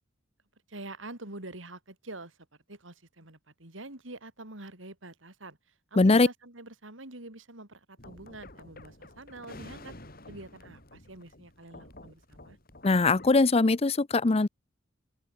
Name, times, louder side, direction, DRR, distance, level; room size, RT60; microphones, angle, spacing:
voice 1, 0.7-2.4 2.7-5.7 6.2-10.0 10.3-12.6, right 2 dB, 85° right, 4.4 m, -46 dB
voice 2, 6.0-6.3 12.8-14.5, left 3 dB, 30° left, 0.6 m, -21 dB
sound 1, 8.0-13.5, left 2 dB, 50° left, 6.7 m, -50 dB
open air
head